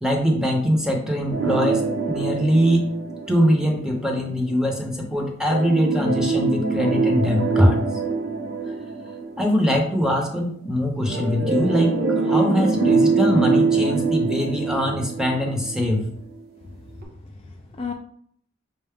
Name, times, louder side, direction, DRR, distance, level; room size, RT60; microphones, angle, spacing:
voice 1, 0.0-2.9 3.3-7.8 9.4-16.1, equal, 5° right, 1 dB, 0.7 m, -22 dB
sound 1, 1.3-4.0 5.5-9.8 11.1-16.0 16.3-16.4 17.0-17.1, right 4 dB, 55° right, 0.8 m, -23 dB
voice 2, 14.3-14.7 17.0-17.9, left 5 dB, 30° left, 2 dB, 0.3 m, -37 dB
5.5 x 2.0 x 3.5 m, 0.63 s
head